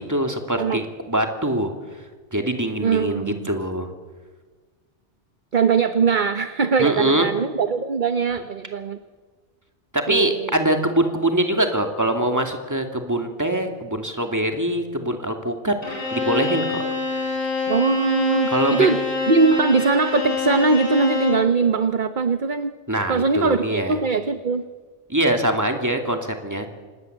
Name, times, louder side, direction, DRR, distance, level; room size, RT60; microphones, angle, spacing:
voice 1, 0.0-1.7 2.3-3.9 6.8-7.3 9.9-16.8 18.5-18.9 22.9-24.0 25.1-26.7, right 1 dB, 15° right, 4 dB, 2.6 m, -23 dB
voice 2, 2.8-3.5 5.5-9.0 10.1-10.5 17.7-19.0 19.3-22.7 23.1-24.6, right 4 dB, 45° right, 9 dB, 1.1 m, -21 dB
Bowed string instrument, 15.8-21.5, left 4 dB, 50° left, 7.9 m, -26 dB
26.5 x 19.5 x 8.0 m, 1.4 s
omnidirectional pair, 1.2 m